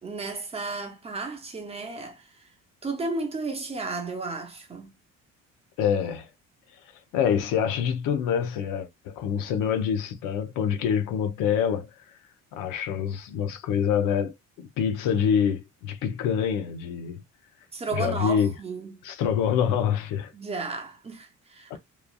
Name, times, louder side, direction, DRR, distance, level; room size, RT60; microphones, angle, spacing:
voice 1, 0.0-2.5 2.8-4.9 17.7-19.0 20.3-21.8, right 3 dB, 20° right, 0.6 m, -33 dB
voice 2, 5.8-6.3 7.1-11.9 12.5-17.2 17.9-18.5 19.0-20.3 21.7-21.8, left 8 dB, 85° left, 0.6 m, -26 dB
3.1 x 2.4 x 2.2 m
cardioid pair, 155°, 31 cm